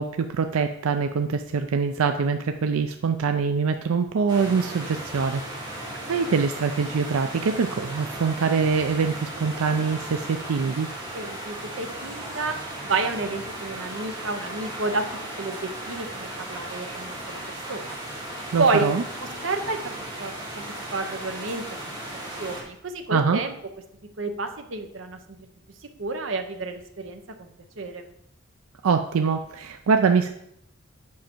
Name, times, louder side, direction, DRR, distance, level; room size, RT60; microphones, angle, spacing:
voice 1, 0.0-5.4 6.1-10.9 18.5-19.0 23.1-23.4 28.8-30.3, right 5 dB, 90° right, 7 dB, 0.4 m, -24 dB
sound 1, 4.3-22.6, right 1 dB, 20° right, 2.4 m, -36 dB
voice 2, 11.1-12.6 12.8-15.0 15.4-17.8 18.6-18.9 19.4-19.9 20.2-20.6 20.9-21.6 22.4-23.6 24.2-25.4 26.0-27.5 27.8-28.1, right 3 dB, 65° right, 6 dB, 0.8 m, -29 dB
7.5 x 5.7 x 4.4 m, 0.75 s
head